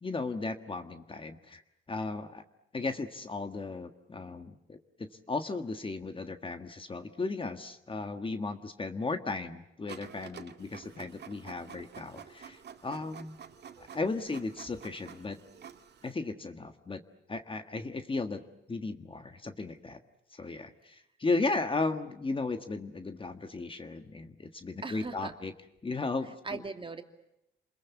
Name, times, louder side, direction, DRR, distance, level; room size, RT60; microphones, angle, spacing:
voice 1, 0.0-1.6 1.9-2.4 2.7-13.4 13.8-15.4 16.0-17.0 17.3-18.4 18.7-20.0 20.3-25.5 25.8-26.6, left 3 dB, 25° left, 8 dB, 1.6 m, -35 dB
Printer, 9.9-16.1, right 7 dB, 55° right, 2.0 m, -49 dB
voice 2, 13.8-14.2 24.8-25.3 26.2-27.0, right 4 dB, 25° right, 6 dB, 2.5 m, -41 dB
29.0 x 21.5 x 8.3 m, 0.85 s
cardioid pair, 90°, 20 cm